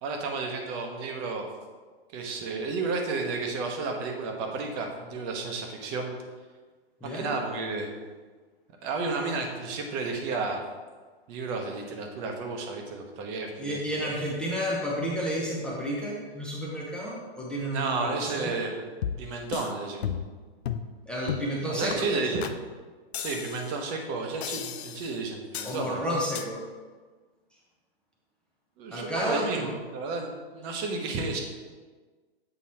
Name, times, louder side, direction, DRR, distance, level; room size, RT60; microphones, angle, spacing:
voice 1, 0.0-1.5 2.1-6.1 7.1-7.9 8.8-10.6 11.3-14.1 17.7-18.9 19.2-20.3 21.7-22.5 23.2-26.1 28.8-31.4, right 3 dB, 35° right, 2 dB, 1.0 m, -32 dB
voice 2, 7.0-7.3 13.6-18.5 21.1-22.4 25.6-26.7 28.9-29.7, equal, 5° left, -5 dB, 0.6 m, -31 dB
sound 1, 19.0-19.7 20.0-20.4 20.6-20.9 21.3-21.5 21.9-22.0 22.4-22.6 23.1-23.8 24.4-25.1 25.5-25.8 26.3-26.5, left 9 dB, 80° left, 0.5 m, -34 dB
7.8 x 3.0 x 4.2 m, 1.4 s
hypercardioid pair, 135°, 31 cm